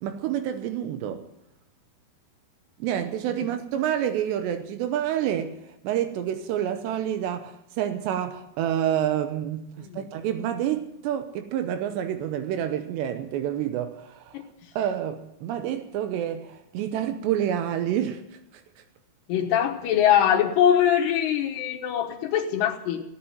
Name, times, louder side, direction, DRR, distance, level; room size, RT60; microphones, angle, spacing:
voice 1, 0.0-1.2 2.8-5.5 5.8-14.4 14.8-18.2, right 10 dB, 85° right, 3.0 m, -28 dB
voice 2, 19.3-23.0, left 10 dB, 75° left, 3.3 m, -22 dB
17.0 x 8.6 x 9.2 m
omnidirectional pair, 5.0 m